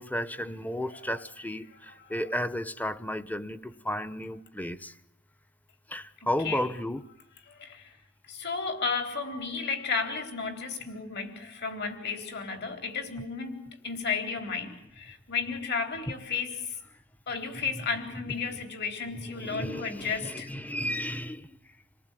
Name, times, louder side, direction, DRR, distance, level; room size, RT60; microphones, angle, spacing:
voice 1, 0.0-4.9 5.9-7.0 17.5-17.6 19.3-21.6, equal, 10° left, 0.9 m, -33 dB
voice 2, 7.5-7.9 8.3-16.8 17.3-20.5, left 5 dB, 55° left, 3.9 m, -33 dB
27.5 x 19.0 x 9.2 m
head